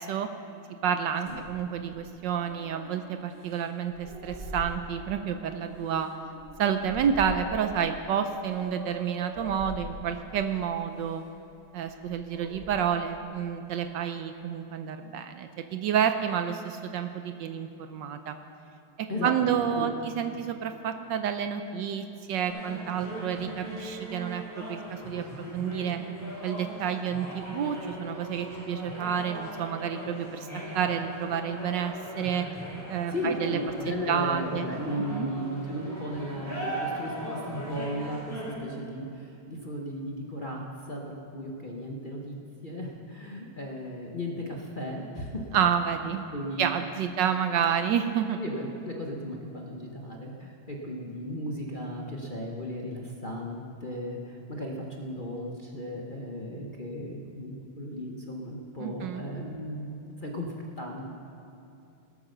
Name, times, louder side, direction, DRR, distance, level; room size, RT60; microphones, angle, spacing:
voice 1, 0.8-6.1 6.6-11.2 11.7-18.4 19.0-25.3 25.5-26.0 26.4-30.5 30.7-32.5 32.9-33.6 33.9-34.7 35.1-35.3 45.5-46.2 46.6-48.4 58.8-59.2, right 8 dB, 70° right, 8 dB, 1.2 m, -29 dB
sound 1, 1.3-2.4 3.3-5.2 5.7-7.9 8.5-8.7 9.3-10.4 11.0-11.3 11.7-13.1, left 2 dB, 45° right, 2.3 m, -44 dB
sound 2, 2.4-3.4 4.0-4.5 5.0-6.8 7.4-7.6 8.5-9.6 12.3-12.5 12.8-12.9, right 2 dB, 85° right, 4.4 m, -45 dB
voice 2, 19.1-19.9 33.1-45.4 46.3-47.2 48.3-61.1, equal, 35° left, -1 dB, 0.9 m, -36 dB
sound 3, 22.4-38.5, equal, 10° right, 4.1 m, -39 dB
18.0 x 8.7 x 6.6 m, 2.8 s
omnidirectional pair, 2.2 m